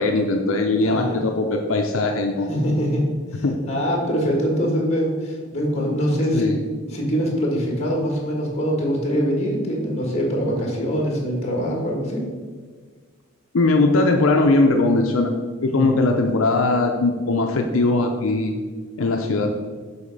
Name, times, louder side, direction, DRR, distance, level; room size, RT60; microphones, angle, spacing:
voice 1, 0.0-2.5 3.4-3.6 6.3-6.6 13.5-15.3 15.6-18.5 19.0-19.5, left 2 dB, 75° left, 2 dB, 0.6 m, -20 dB
voice 2, 0.8-1.2 2.5-6.5 6.9-12.2 15.6-16.0, equal, 30° left, -1 dB, 1.6 m, -23 dB
7.1 x 4.2 x 5.2 m, 1.5 s
head